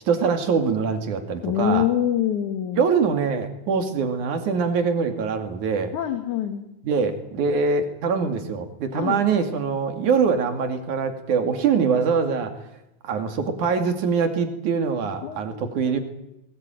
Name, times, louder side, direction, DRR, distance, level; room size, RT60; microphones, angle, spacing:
voice 1, 0.1-1.9 2.8-5.9 6.8-12.5 13.0-16.0, right 5 dB, 75° right, 7 dB, 3.8 m, -23 dB
voice 2, 1.4-2.9 5.9-6.6 8.9-9.2 15.2-16.0, left 10 dB, 75° left, 7 dB, 3.0 m, -25 dB
21.0 x 19.0 x 9.2 m, 0.88 s
omnidirectional pair, 3.5 m